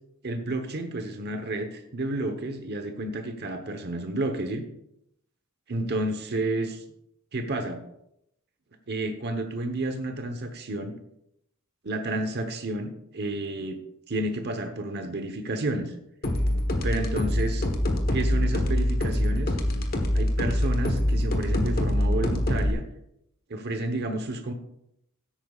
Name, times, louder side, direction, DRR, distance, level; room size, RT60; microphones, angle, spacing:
voice 1, 0.2-4.6 5.7-6.8 7.3-7.8 8.9-10.9 11.8-13.8 14.1-15.9 16.8-17.6 18.1-19.6 20.1-22.8 23.5-24.5, right 2 dB, 50° right, 5 dB, 1.0 m, -30 dB
sound 1, 16.2-22.7, left 1 dB, 45° left, 1.2 m, -24 dB
16.0 x 8.7 x 2.4 m, 0.79 s
head